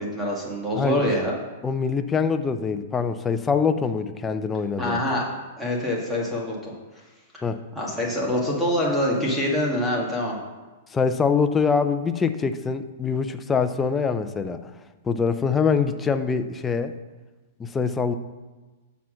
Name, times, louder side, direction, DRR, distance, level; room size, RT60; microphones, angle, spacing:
voice 1, 0.0-1.3 4.8-5.3 5.6-6.7 7.3-7.4 7.7-10.4, left 1 dB, 5° right, -4 dB, 1.8 m, -25 dB
voice 2, 1.6-5.0 7.4-7.6 10.9-14.7 15.0-16.9 17.6-18.1, left 5 dB, 15° left, 8 dB, 0.5 m, -24 dB
7.1 x 5.8 x 6.2 m, 1.2 s
hypercardioid pair, 150°, 0 cm